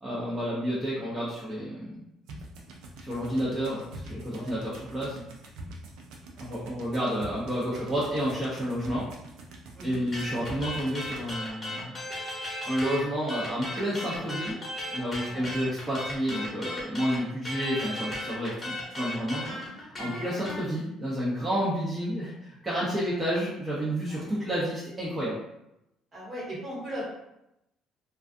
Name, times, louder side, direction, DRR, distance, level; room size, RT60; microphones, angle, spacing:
voice 1, 0.0-2.1 3.0-5.2 6.4-9.1 9.8-12.0 12.7-14.6 14.9-19.5 20.0-25.4, equal, 15° right, -8 dB, 0.7 m, -30 dB
sound 1, 2.3-11.3, right 1 dB, 80° right, 0.4 m, -45 dB
sound 2, 10.1-13.0 13.3-20.6, left 1 dB, 20° left, 1.0 m, -36 dB
voice 2, 26.1-27.1, equal, 40° right, -6 dB, 1.3 m, -39 dB
2.3 x 2.3 x 2.5 m, 0.86 s
cardioid pair, 105°, 0 cm